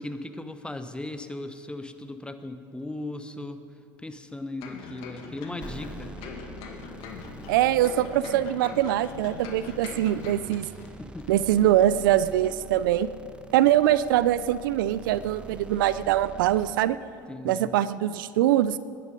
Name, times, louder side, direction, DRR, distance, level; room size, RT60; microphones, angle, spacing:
voice 1, 0.0-3.6 4.0-6.2 11.0-11.3 17.3-17.7, left 2 dB, 10° left, 10 dB, 1.1 m, -37 dB
sound 1, 4.6-10.9 11.2-11.3, left 5 dB, 60° left, 2.0 m, -42 dB
sound 2, 5.6-16.7, right 3 dB, 10° right, 1.0 m, -45 dB
voice 2, 7.5-10.7 11.3-13.1 13.5-17.0 17.4-18.8, right 12 dB, 75° right, 16 dB, 0.5 m, -23 dB
20.0 x 11.0 x 5.2 m, 2.5 s
hypercardioid pair, 75°, 11 cm